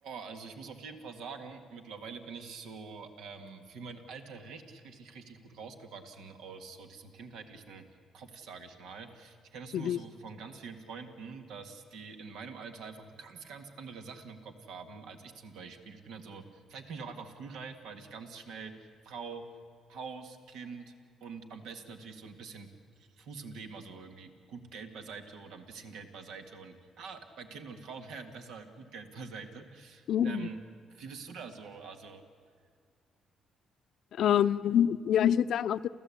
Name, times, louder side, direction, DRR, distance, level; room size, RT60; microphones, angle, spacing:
voice 1, 0.0-7.8 8.1-18.7 19.0-19.4 19.9-20.9 21.2-22.7 23.0-30.6 30.9-32.2, right 5 dB, 85° right, 6 dB, 1.8 m, -45 dB
voice 2, 30.1-30.5 34.2-35.9, left 9 dB, 70° left, 13 dB, 0.5 m, -26 dB
29.0 x 15.0 x 8.5 m, 2.2 s
cardioid pair, 90°, 0 cm